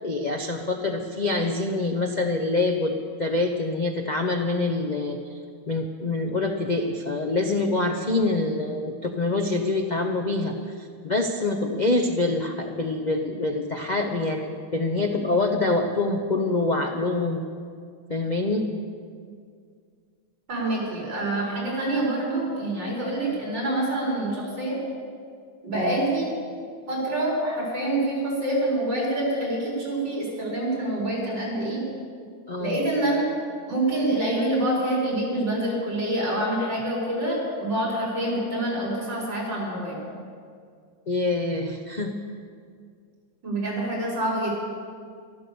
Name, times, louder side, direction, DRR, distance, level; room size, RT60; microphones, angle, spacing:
voice 1, 0.0-5.4 5.7-17.4 18.1-18.7 25.7-26.0 32.5-32.8 41.1-42.1, left 2 dB, 60° left, 3 dB, 0.4 m, -25 dB
voice 2, 20.5-24.8 25.6-26.3 26.9-31.8 32.6-33.2 33.7-40.0 43.4-44.5, right 1 dB, 65° right, -5 dB, 5.5 m, -26 dB
13.5 x 12.5 x 6.9 m, 2.2 s
omnidirectional pair, 2.1 m